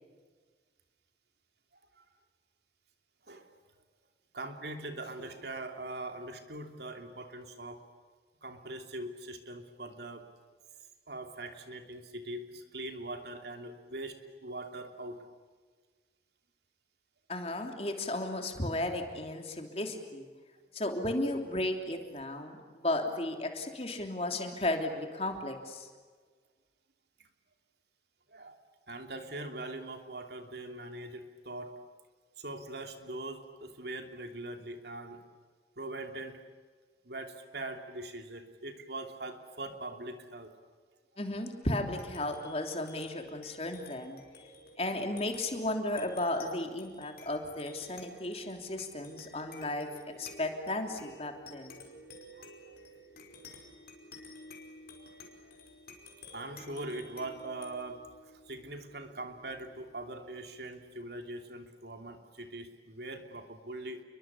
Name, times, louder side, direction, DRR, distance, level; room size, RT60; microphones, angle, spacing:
voice 1, 4.3-7.9 8.4-10.3 11.1-15.2 28.3-28.6 28.9-31.7 32.4-35.2 35.8-36.4 37.0-40.5 52.4-52.8 56.3-58.0 58.3-64.0, right 2 dB, 65° right, 5 dB, 2.9 m, -42 dB
voice 2, 17.3-20.2 20.7-25.9 41.2-44.2 44.8-49.9 50.2-51.8, left 1 dB, 35° left, 4 dB, 3.2 m, -34 dB
sound 1, 41.8-60.6, left 2 dB, 55° left, 5.0 m, -53 dB
29.5 x 23.0 x 8.5 m, 1.5 s
head